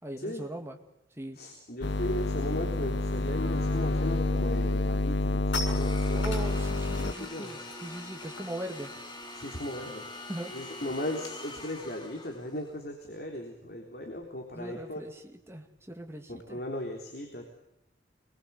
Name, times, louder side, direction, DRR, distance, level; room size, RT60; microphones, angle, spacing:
voice 1, 0.0-0.8 1.2-1.4 6.1-8.9 10.3-10.7 14.5-16.6, right 1 dB, 15° right, 4 dB, 2.4 m, -40 dB
voice 2, 1.4-6.3 7.0-7.6 9.3-10.0 10.5-15.0 16.3-17.5, left 1 dB, 55° left, 2 dB, 3.7 m, -37 dB
sound 1, 1.8-7.1, left 2 dB, 70° left, 1.1 m, -28 dB
sound 2, 5.2-10.7 11.0-11.2 11.5-16.5, left 3 dB, 90° left, 7.5 m, -45 dB
Domestic sounds home sounds, 5.7-12.7, left 2 dB, 25° left, 3.3 m, -44 dB
27.0 x 22.0 x 8.4 m, 0.83 s
head